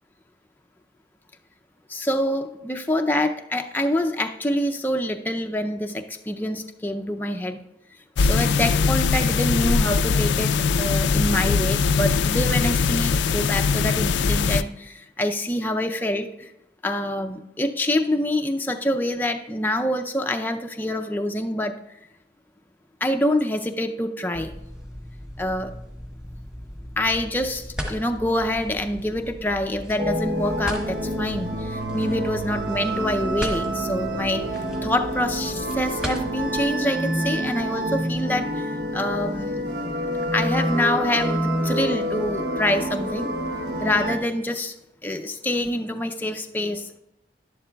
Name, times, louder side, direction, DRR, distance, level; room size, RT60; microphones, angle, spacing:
voice 1, 1.9-7.6 8.2-16.5 16.8-21.8 23.0-24.5 25.4-25.7 27.0-34.4 34.8-39.6 40.3-43.3 43.8-44.7 45.0-47.0, left 1 dB, 10° left, 4 dB, 0.5 m, -26 dB
sound 1, 8.2-14.6, left 5 dB, 90° left, 0.4 m, -21 dB
sound 2, 24.3-36.6, equal, 5° right, 1.4 m, -37 dB
sound 3, 30.0-44.2, right 1 dB, 70° right, 1.1 m, -27 dB
11.5 x 11.0 x 2.3 m, 0.87 s
head